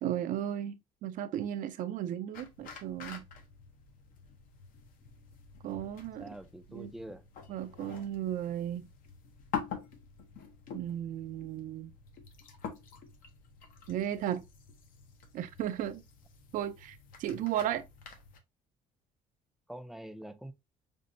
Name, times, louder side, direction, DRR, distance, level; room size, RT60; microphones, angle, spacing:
voice 1, 0.0-3.3 5.6-6.3 6.7-6.9 7.5-8.9 10.7-11.9 13.9-14.4 15.3-16.0 16.5-17.8, right 11 dB, 65° right, 0.5 m, -35 dB
sound 1, 2.3-18.4, left 6 dB, 70° left, 0.7 m, -46 dB
voice 2, 6.2-7.2 19.7-20.5, right 1 dB, ahead, 0.4 m, -45 dB
5.3 x 2.0 x 2.5 m
cardioid pair, 115°, 15 cm